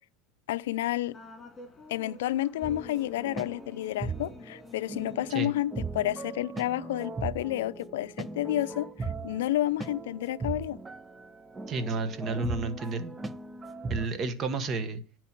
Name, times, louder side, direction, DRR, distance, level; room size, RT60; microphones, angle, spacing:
voice 1, 0.5-1.2 1.9-10.8, left 14 dB, 90° left, 0.5 m, -30 dB
sound 1, 1.1-5.9, left 3 dB, 15° left, 2.8 m, -50 dB
sound 2, 2.6-14.1, right 3 dB, 15° right, 0.5 m, -38 dB
voice 2, 11.7-13.1 13.9-15.0, right 3 dB, 35° right, 1.2 m, -31 dB
10.0 x 4.6 x 7.3 m
supercardioid pair, 130°, 0 cm